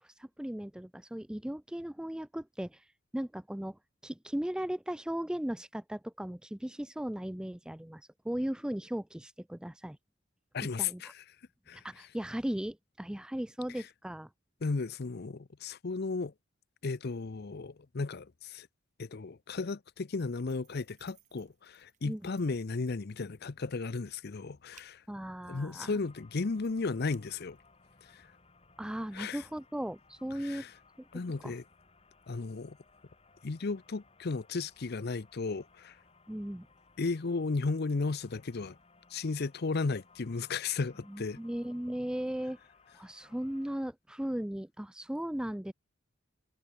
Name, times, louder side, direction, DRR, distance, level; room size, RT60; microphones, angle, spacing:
voice 1, 0.0-2.8 3.1-10.0 10.8-11.0 11.7-14.3 22.0-22.2 25.1-26.0 28.8-30.7 31.0-31.1 31.4-31.5 36.3-36.7 41.1-42.6 42.9-45.7, equal, 5° right, 0.4 m, -37 dB
voice 2, 10.5-11.1 11.7-11.8 14.6-16.3 16.8-18.7 19.0-25.0 25.5-27.6 28.1-28.3 29.1-29.4 30.4-30.7 31.1-31.6 32.3-32.8 33.4-36.0 37.0-38.8 39.1-41.4, left 4 dB, 50° left, 0.6 m, -34 dB
sound 1, 20.5-27.8, right 9 dB, 40° right, 5.4 m, -67 dB
sound 2, 26.0-43.9, left 3 dB, 30° left, 3.7 m, -63 dB
head